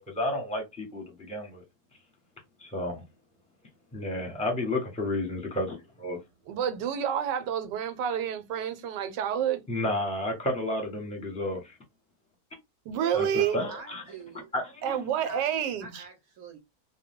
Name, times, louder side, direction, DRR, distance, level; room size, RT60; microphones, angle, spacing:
voice 1, 0.0-1.6 2.6-3.0 3.9-5.8 6.0-6.2 9.7-11.8 13.1-14.0 14.5-15.0, left 1 dB, 5° left, 0.9 m, -31 dB
voice 2, 6.5-9.6 12.9-13.6 14.8-16.0, right 9 dB, 85° right, 1.3 m, -29 dB
voice 3, 13.3-14.5 15.2-15.4 15.8-16.6, right 5 dB, 65° right, 1.0 m, -44 dB
2.6 x 2.3 x 3.5 m
omnidirectional pair, 1.8 m